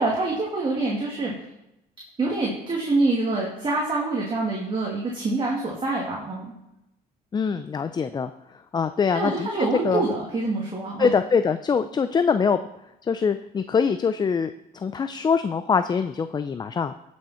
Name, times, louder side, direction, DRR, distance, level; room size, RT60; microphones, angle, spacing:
voice 1, 0.0-1.3 2.2-6.5 9.1-11.1, right 3 dB, 30° right, -3 dB, 2.3 m, -26 dB
voice 2, 7.3-9.5 9.8-10.0 11.0-12.6 13.0-16.9, left 6 dB, 25° left, 10 dB, 0.4 m, -24 dB
16.5 x 6.3 x 4.3 m, 0.87 s
cardioid pair, 110°, 17 cm